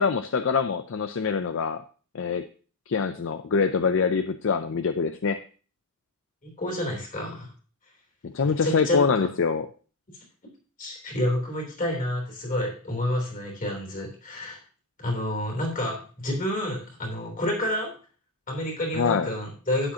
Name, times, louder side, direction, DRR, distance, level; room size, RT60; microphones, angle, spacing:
voice 1, 0.0-1.8 2.1-2.5 2.9-5.4 8.2-9.7 18.9-19.3, left 5 dB, 60° left, 9 dB, 0.5 m, -24 dB
voice 2, 6.4-7.5 8.6-9.3 10.8-14.6 15.0-17.9 18.5-19.9, left 1 dB, 40° left, 1 dB, 3.3 m, -29 dB
11.5 x 8.7 x 2.8 m, 0.39 s
head